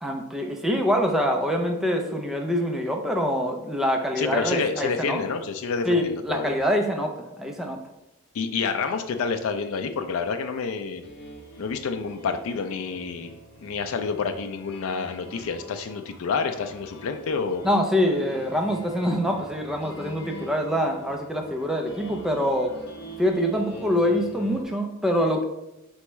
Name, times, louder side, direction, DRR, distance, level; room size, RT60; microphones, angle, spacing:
voice 1, 0.0-5.2 5.9-7.8 17.6-22.8 23.2-25.4, equal, ahead, 2 dB, 0.4 m, -25 dB
voice 2, 4.2-6.6 8.3-11.0 11.6-13.3 13.6-17.6, left 5 dB, 70° left, 7 dB, 0.4 m, -28 dB
sound 1, 11.0-24.6, right 1 dB, 55° left, 0.8 m, -44 dB
4.4 x 3.4 x 3.0 m, 0.90 s
head